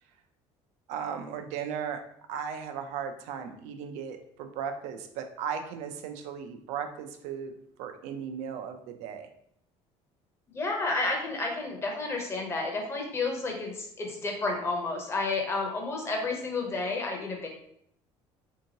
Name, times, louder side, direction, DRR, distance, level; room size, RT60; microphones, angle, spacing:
voice 1, 0.9-2.0 2.3-7.5 7.8-9.3, right 7 dB, 85° right, 6 dB, 0.5 m, -36 dB
voice 2, 10.5-17.5, left 3 dB, 20° left, 1 dB, 0.7 m, -31 dB
3.5 x 2.8 x 2.8 m, 0.70 s
cardioid pair, 155°, 12 cm